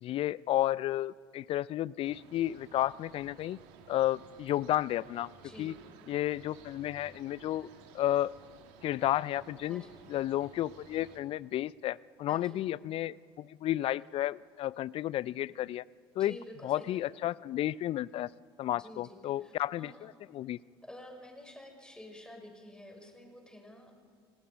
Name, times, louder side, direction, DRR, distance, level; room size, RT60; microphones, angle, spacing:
voice 1, 0.0-3.6 3.9-5.3 5.6-5.7 6.1-7.7 7.9-8.3 8.8-9.8 10.1-15.8 16.2-16.4 16.6-18.3 18.6-20.6, left 13 dB, 45° left, 22 dB, 0.5 m, -32 dB
sound 1, 2.0-11.2, right 7 dB, 65° right, 2.2 m, -55 dB
voice 2, 5.4-5.8 9.7-9.9 12.3-12.6 16.2-17.1 18.7-20.1 20.8-23.9, left 1 dB, 5° left, 2 dB, 6.1 m, -50 dB
30.0 x 18.0 x 5.2 m, 2.2 s
hypercardioid pair, 65°, 13 cm